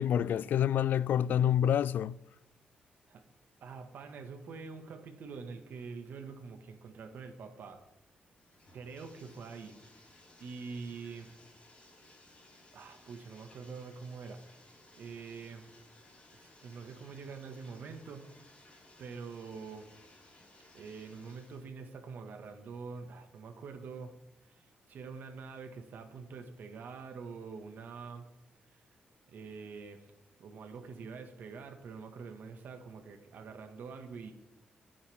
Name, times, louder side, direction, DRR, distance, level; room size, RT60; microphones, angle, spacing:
voice 1, 0.0-2.2, left 9 dB, 75° left, 0.3 m, -27 dB
voice 2, 3.6-7.8 8.7-9.8 10.4-11.4 12.7-14.6 14.9-15.7 16.3-18.5 19.0-19.9 20.7-24.1 24.5-28.3 28.7-28.8 29.3-30.1 30.4-34.3, right 5 dB, 75° right, 1.9 m, -45 dB
Bathtub (filling or washing), 7.6-21.7, left 2 dB, 35° left, 4.8 m, -60 dB
24.5 x 8.7 x 3.7 m
cardioid pair, 125°, 3 cm